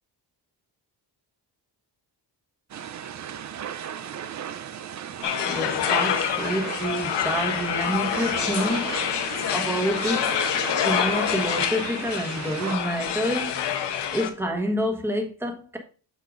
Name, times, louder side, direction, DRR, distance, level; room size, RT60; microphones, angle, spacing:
sound 1, 2.7-12.7, right 9 dB, 45° right, 0.5 m, -36 dB
sound 2, 5.2-14.3, left 9 dB, 85° left, 1.0 m, -27 dB
voice 1, 5.5-9.0 9.5-10.4 10.7-13.6 14.1-15.8, equal, 5° right, 1.3 m, -28 dB
8.3 x 6.7 x 2.5 m
wide cardioid pair, 150°, 41 cm